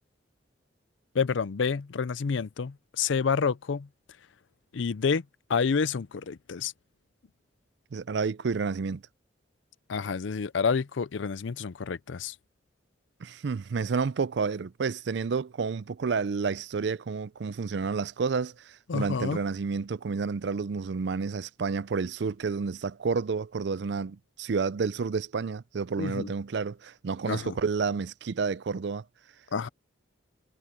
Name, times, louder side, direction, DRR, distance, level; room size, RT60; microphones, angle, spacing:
voice 1, 1.1-3.9 4.7-5.2 5.5-6.7 9.9-12.3 18.9-19.4 26.0-26.3 27.3-27.6 29.5-29.7, left 5 dB, 75° left, 0.5 m, -28 dB
voice 2, 7.9-9.0 13.2-18.5 18.9-29.0, right 5 dB, 65° right, 0.4 m, -30 dB
head